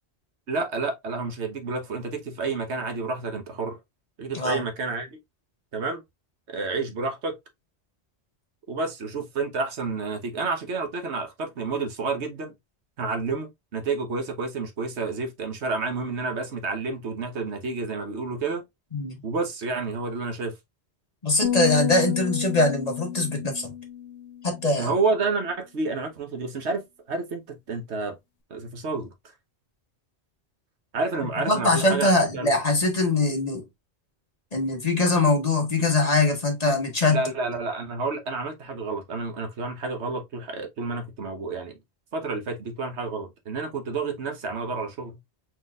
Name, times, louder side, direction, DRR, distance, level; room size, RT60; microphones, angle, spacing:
voice 1, 0.5-3.8 4.2-5.2 5.7-6.0 6.5-7.3 8.7-12.5 13.0-18.6 19.2-20.5 24.8-28.2 28.5-29.1 30.9-32.5 37.1-41.7 42.1-45.2, right 3 dB, 80° right, 1.3 m, -30 dB
voice 2, 21.2-23.7 24.4-24.9 31.5-33.6 34.5-37.2, left 2 dB, 35° left, 1.5 m, -22 dB
sound 1, 21.4-24.8, left 10 dB, 65° left, 1.1 m, -31 dB
4.5 x 4.0 x 2.4 m
omnidirectional pair, 1.1 m